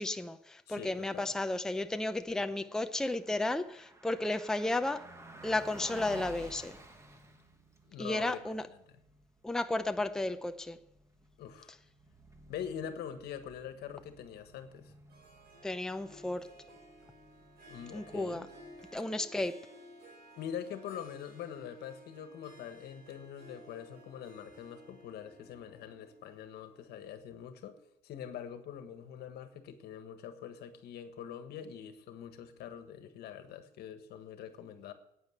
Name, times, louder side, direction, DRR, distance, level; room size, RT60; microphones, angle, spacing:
voice 1, 0.0-5.1 5.4-6.7 8.0-8.6 9.4-10.8 15.6-16.5 17.9-18.4 18.9-19.6, left 2 dB, 5° left, 9 dB, 0.6 m, -33 dB
voice 2, 0.7-1.3 7.8-8.5 11.4-11.7 12.5-14.9 17.7-18.5 20.4-27.8 28.0-34.9, left 9 dB, 70° left, 9 dB, 1.5 m, -44 dB
Car passing by, 3.1-19.2, right 1 dB, 15° right, 1.6 m, -54 dB
Harp, 15.1-27.3, equal, 65° right, 4.7 m, -56 dB
9.2 x 9.2 x 7.8 m, 0.81 s
cardioid pair, 110°, 17 cm